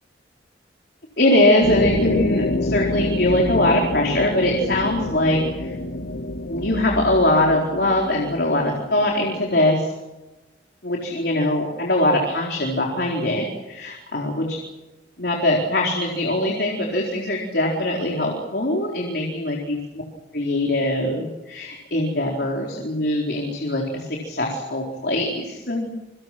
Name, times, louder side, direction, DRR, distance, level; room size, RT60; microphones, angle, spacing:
voice 1, 1.2-5.7 6.5-9.9 10.8-14.6 15.2-19.8 20.3-25.9, left 1 dB, 65° left, -1 dB, 4.4 m, -22 dB
sound 1, 1.6-9.8, left 2 dB, 80° left, 1.6 m, -27 dB
28.0 x 25.0 x 6.1 m, 1.1 s
head